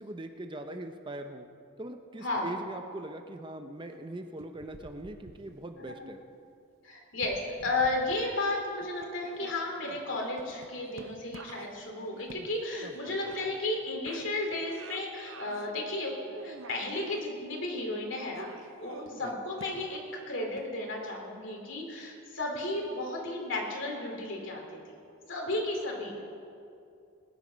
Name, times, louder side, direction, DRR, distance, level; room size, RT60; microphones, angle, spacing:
voice 1, 0.0-1.5 1.8-6.2 12.8-13.1 19.2-19.3, right 1 dB, 25° right, 6 dB, 0.7 m, -41 dB
sound 1, 4.4-5.9 7.1-8.5 8.8-13.8 14.1-15.7 16.1-17.3 18.3-20.1 20.6-20.7, right 3 dB, 70° right, 0.8 m, -48 dB
voice 2, 6.8-18.5 18.8-24.8 25.3-26.2, left 2 dB, 65° left, 1 dB, 3.0 m, -33 dB
20.5 x 10.5 x 5.2 m, 2.5 s
head